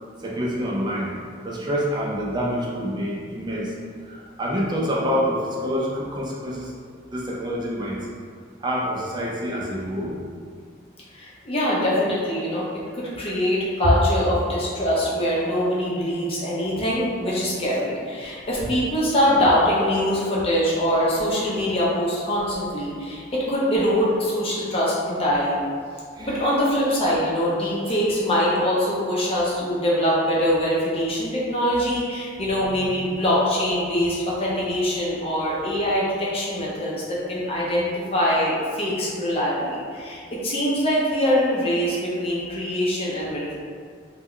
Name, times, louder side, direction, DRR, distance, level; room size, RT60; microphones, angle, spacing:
voice 1, 0.2-1.1 1.4-3.7 4.1-6.7 7.1-8.0 8.6-10.1 26.2-26.3, equal, 25° right, -4 dB, 0.4 m, -27 dB
voice 2, 11.1-12.7 12.9-25.6 26.2-43.6, equal, 30° left, -6 dB, 0.5 m, -23 dB
2.1 x 2.1 x 3.6 m, 2.1 s
head